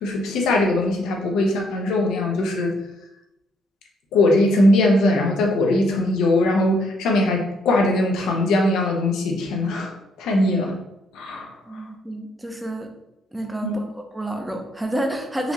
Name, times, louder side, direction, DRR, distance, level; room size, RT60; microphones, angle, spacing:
voice 1, 0.0-2.7 4.1-9.9 10.2-10.8 11.1-11.8 13.6-13.8, left 1 dB, 85° left, 1 dB, 0.8 m, -20 dB
voice 2, 11.7-12.9 13.3-15.5, right 1 dB, 10° right, 4 dB, 0.6 m, -29 dB
4.0 x 2.9 x 2.9 m, 0.89 s
cardioid pair, 90°, 0 cm